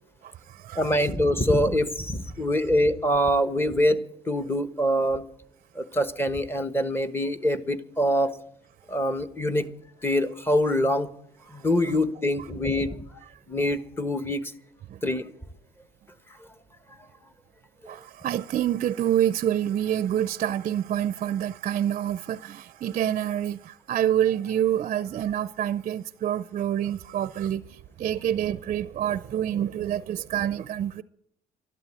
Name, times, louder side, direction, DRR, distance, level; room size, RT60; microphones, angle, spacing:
voice 1, 0.2-1.1 11.9-12.0 14.9-15.0 17.9-31.0, right 10 dB, 45° right, 0.5 m, -27 dB
voice 2, 0.8-5.2 5.7-8.4 8.9-9.7 10.0-11.1 11.5-13.0 13.5-14.4 15.0-15.3, equal, 15° left, 1.1 m, -24 dB
12.0 x 12.0 x 8.2 m
cardioid pair, 110°, 17 cm